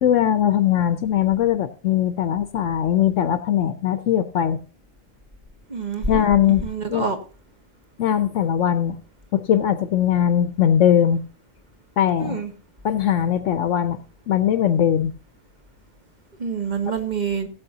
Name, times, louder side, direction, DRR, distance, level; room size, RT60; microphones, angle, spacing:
voice 1, 0.0-4.6 6.1-6.6 6.9-7.1 8.0-9.0 9.3-11.2 12.0-12.4 12.8-15.1, left 10 dB, 70° left, 11 dB, 1.0 m, -20 dB
voice 2, 5.7-6.2 6.6-7.2 12.2-12.5 16.4-17.5, right 5 dB, 35° right, 6 dB, 1.6 m, -26 dB
16.5 x 8.5 x 2.8 m, 0.35 s
omnidirectional pair, 1.4 m